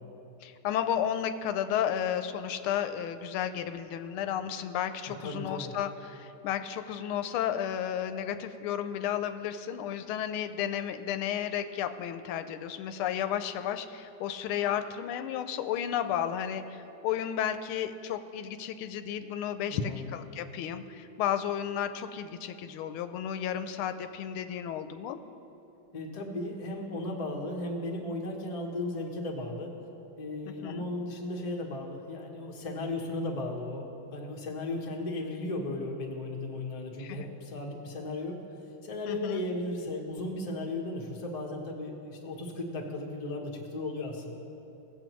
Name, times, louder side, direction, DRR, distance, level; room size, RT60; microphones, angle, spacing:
voice 1, 0.4-25.2 30.6-30.9 37.0-37.3 39.1-39.4, left 9 dB, 90° left, 10 dB, 1.4 m, -33 dB
voice 2, 5.2-5.7 19.7-20.1 25.9-29.8 30.2-38.4 38.8-44.4, left 2 dB, 35° left, 0 dB, 0.6 m, -35 dB
17.5 x 7.3 x 3.0 m, 2.9 s
omnidirectional pair, 2.3 m